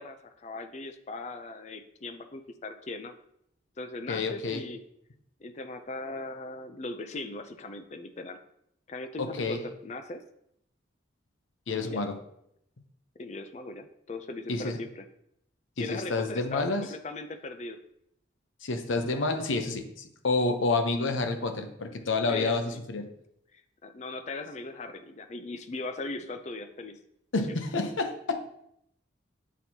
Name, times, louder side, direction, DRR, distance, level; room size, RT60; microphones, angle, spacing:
voice 1, 0.0-3.1 3.8-4.8 5.4-8.4 8.9-10.2 11.8-12.0 13.2-15.1 15.8-17.8 22.3-22.8 23.5-27.0 27.5-27.6, left 2 dB, 35° left, 9 dB, 0.4 m, -39 dB
voice 2, 4.1-4.6 9.2-9.6 11.7-12.2 14.5-14.8 15.8-16.8 18.6-23.1 27.3-28.5, left 3 dB, 80° left, 7 dB, 0.7 m, -29 dB
8.1 x 4.4 x 2.8 m, 0.74 s
head